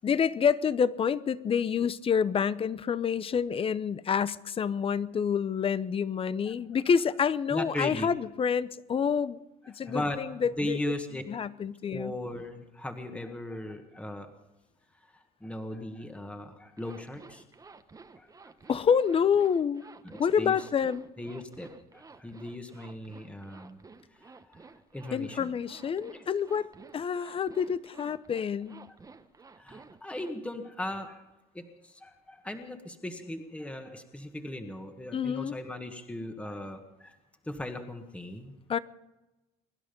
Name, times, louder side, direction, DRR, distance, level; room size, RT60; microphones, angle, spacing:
voice 1, 0.0-9.4 9.7-10.8 11.3-12.1 18.7-19.8 20.2-21.0 25.1-26.7 26.9-28.8 35.1-35.6 38.7-38.8, left 7 dB, 30° left, 17 dB, 0.8 m, -28 dB
voice 2, 7.5-8.1 9.7-11.2 11.9-14.3 15.0-17.4 18.2-18.5 20.0-20.7 21.2-23.8 24.1-25.5 26.1-26.2 29.6-31.2 31.5-37.2 37.4-38.6, left 1 dB, 5° left, 6 dB, 1.7 m, -38 dB
Zipper (clothing), 16.8-30.3, right 4 dB, 20° right, 1.2 m, -52 dB
24.0 x 11.0 x 5.4 m, 1.0 s
supercardioid pair, 105°, 17 cm